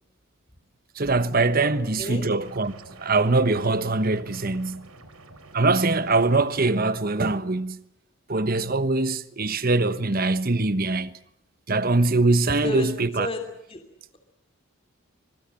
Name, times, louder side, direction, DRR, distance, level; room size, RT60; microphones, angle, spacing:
voice 1, 1.0-2.7 3.0-4.9 5.5-7.8 8.3-11.2 11.7-13.3, right 3 dB, 45° right, 1.1 m, -23 dB
voice 2, 1.6-2.3 12.6-13.8, left 1 dB, 25° left, 3.0 m, -32 dB
sound 1, 2.4-6.8, right 2 dB, 85° right, 4.0 m, -48 dB
24.0 x 23.5 x 7.6 m
head